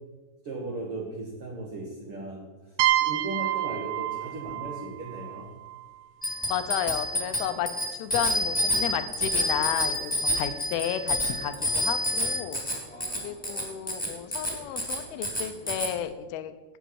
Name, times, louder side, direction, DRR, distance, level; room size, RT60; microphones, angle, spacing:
voice 1, 0.4-5.5, right 2 dB, 55° right, -1 dB, 1.6 m, -37 dB
sound 1, 2.8-6.4, right 14 dB, 85° right, 2.6 m, -29 dB
Bicycle bell, 6.2-15.9, left 1 dB, ahead, 2.1 m, -28 dB
voice 2, 6.5-7.7 8.0-10.1 10.4-12.6 13.2-16.5, left 10 dB, 75° left, 10 dB, 2.5 m, -32 dB
13.5 x 8.9 x 4.8 m, 1.3 s
omnidirectional pair, 4.8 m